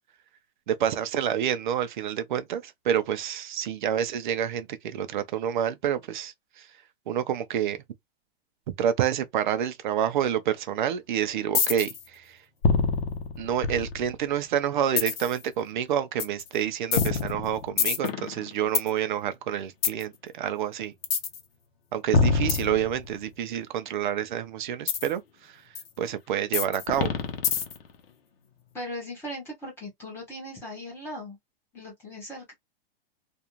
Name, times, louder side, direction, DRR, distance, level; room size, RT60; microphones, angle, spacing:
voice 1, 0.7-6.7 7.1-7.8 8.8-12.4 13.4-20.9 21.9-25.6 26.0-27.1, right 9 dB, 50° right, 0.5 m, -28 dB
sound 1, 11.5-12.0 12.6-14.2 15.0-15.4 16.2-16.4 16.9-18.9 19.8-20.0 21.0-21.4 22.1-23.3 24.9-25.1 25.7-25.8 26.5-27.9, left 5 dB, 70° left, 0.8 m, -25 dB
voice 2, 28.7-31.4 31.7-32.5, left 1 dB, 10° left, 0.7 m, -38 dB
2.5 x 2.3 x 2.9 m
supercardioid pair, 175°, 30 cm